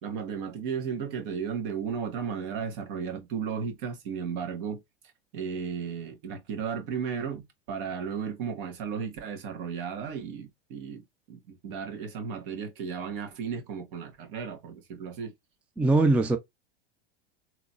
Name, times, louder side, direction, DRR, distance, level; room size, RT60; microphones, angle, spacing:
voice 1, 0.0-4.8 5.3-15.3, right 6 dB, 60° right, 1.6 m, -34 dB
voice 2, 15.8-16.4, right 2 dB, 5° right, 0.4 m, -21 dB
3.8 x 2.9 x 2.4 m
hypercardioid pair, 110°, 30 cm